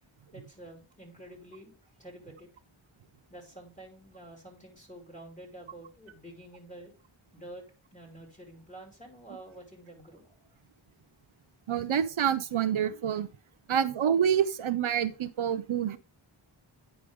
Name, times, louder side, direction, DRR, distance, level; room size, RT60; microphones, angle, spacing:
voice 1, 0.3-2.5 3.3-6.9 7.3-7.6 7.9-10.4, right 1 dB, 15° left, -1 dB, 2.6 m, -48 dB
voice 2, 11.7-13.3 13.7-16.0, right 9 dB, 75° right, 12 dB, 0.6 m, -27 dB
9.2 x 5.0 x 3.5 m, 0.33 s
wide cardioid pair, 40°, 50 cm